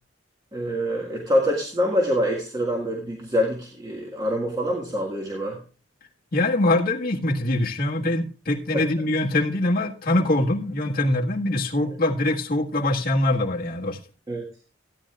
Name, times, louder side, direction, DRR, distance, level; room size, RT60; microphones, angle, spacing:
voice 1, 0.5-5.6 8.7-8.8 14.3-14.5, equal, 20° right, 1.7 m, -25 dB
voice 2, 6.3-14.0, left 1 dB, 50° left, 1.7 m, -23 dB
16.0 x 9.9 x 2.4 m
head